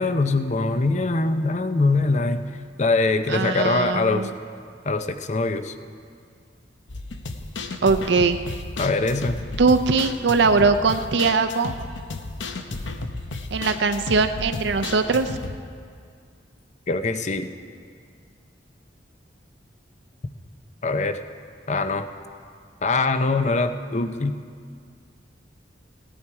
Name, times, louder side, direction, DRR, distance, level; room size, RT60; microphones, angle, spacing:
voice 1, 0.0-2.5 2.8-4.3 4.8-5.7 8.8-9.4 16.9-17.5 20.8-21.2 21.7-22.1 22.8-24.4, left 3 dB, 40° left, 9 dB, 0.6 m, -23 dB
voice 2, 3.3-4.3 7.8-8.4 9.6-11.7 13.5-15.3, right 4 dB, 70° right, 8 dB, 0.5 m, -21 dB
sound 1, 6.9-15.6, left 2 dB, 85° left, 0.8 m, -33 dB
16.5 x 10.5 x 4.7 m, 2.2 s
head